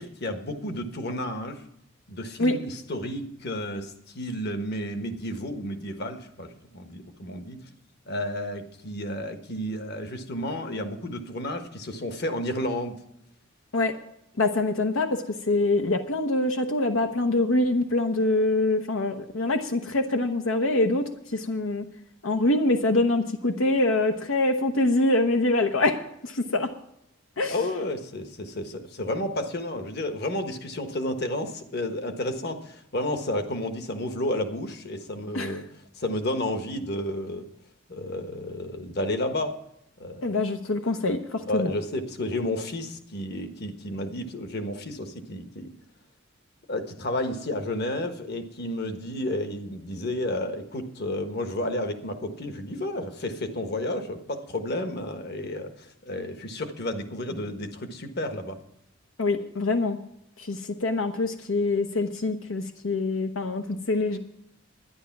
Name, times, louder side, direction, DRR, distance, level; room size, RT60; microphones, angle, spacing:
voice 1, 0.0-1.6 2.1-7.6 8.1-13.0 27.5-37.5 37.9-39.6 40.0-40.4 41.4-45.7 46.7-58.6, left 1 dB, 55° left, 7 dB, 1.3 m, -31 dB
voice 2, 14.4-21.0 21.3-21.8 22.2-26.7 27.4-27.6 35.3-35.6 40.2-41.7 59.2-60.0 60.4-64.2, left 2 dB, 85° left, 5 dB, 0.9 m, -25 dB
12.0 x 10.5 x 5.9 m, 0.78 s
head